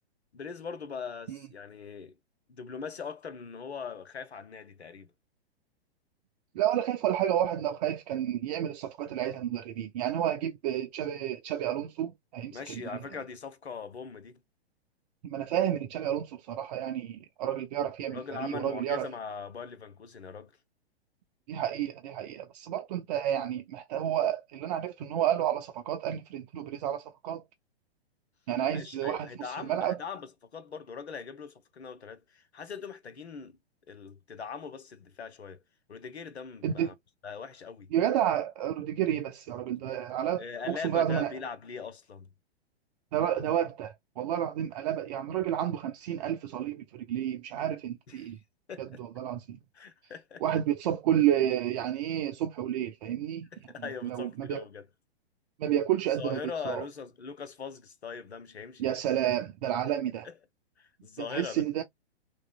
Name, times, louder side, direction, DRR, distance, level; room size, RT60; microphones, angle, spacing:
voice 1, 0.3-2.1 2.5-5.1 12.5-14.4 18.1-20.5 28.7-33.6 33.9-35.6 35.9-36.9 37.2-37.9 40.4-42.3 48.1-48.3 48.7-48.8 49.7-50.4 53.5-54.9 56.2-58.9 60.2-60.3 60.8-61.6, left 5 dB, 85° left, 0.8 m, -41 dB
voice 2, 6.5-12.8 15.2-19.1 21.5-27.4 28.5-30.0 36.6-36.9 37.9-41.3 43.1-48.4 48.8-49.6 50.4-53.5 53.8-54.6 55.6-56.8 58.8-60.3 61.2-61.8, right 11 dB, 40° right, 0.6 m, -30 dB
3.0 x 3.0 x 2.3 m
figure-of-eight pair, 110°, 32 cm